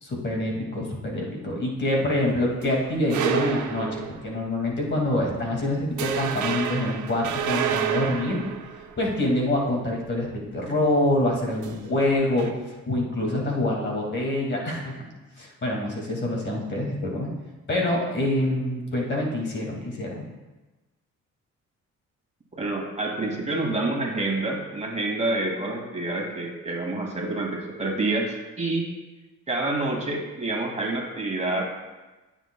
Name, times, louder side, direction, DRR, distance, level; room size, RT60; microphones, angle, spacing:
voice 1, 0.0-8.4 9.0-12.5 12.9-15.0 15.4-17.3 17.7-20.2, left 1 dB, 40° left, -1 dB, 2.2 m, -26 dB
sound 1, 2.2-4.5 4.9-5.1 5.5-5.6 6.0-9.5 11.5-12.5, right 8 dB, 75° right, 0.9 m, -29 dB
voice 2, 22.5-28.9 29.5-31.7, right 2 dB, 20° right, 0 dB, 2.2 m, -28 dB
16.0 x 7.4 x 2.3 m, 1.2 s
cardioid pair, 90°, 30 cm